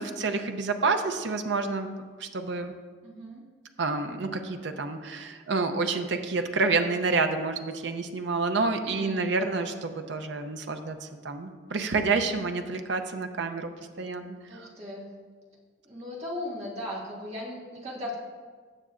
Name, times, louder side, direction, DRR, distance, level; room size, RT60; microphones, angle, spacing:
voice 1, 0.0-1.9 2.2-2.7 3.8-13.7 14.0-14.7, right 3 dB, 65° right, 6 dB, 0.6 m, -29 dB
voice 2, 3.0-3.5 8.8-9.4 14.5-15.1 15.8-18.1, left 1 dB, 35° right, -4 dB, 1.8 m, -37 dB
16.5 x 6.6 x 2.5 m, 1.5 s
head